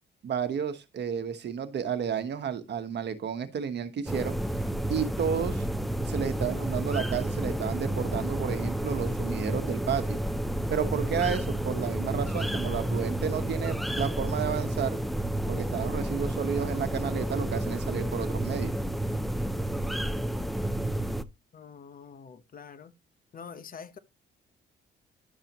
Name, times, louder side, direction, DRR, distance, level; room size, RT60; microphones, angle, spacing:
voice 1, 0.2-4.4 4.9-5.7 6.1-10.2 10.7-15.0 15.5-18.7, right 7 dB, 60° right, 1.3 m, -32 dB
sound 1, 4.1-21.2, right 1 dB, ahead, 0.6 m, -30 dB
voice 2, 21.5-23.0 23.3-24.0, left 6 dB, 45° left, 1.1 m, -45 dB
11.5 x 6.7 x 3.0 m
cardioid pair, 90°, 20 cm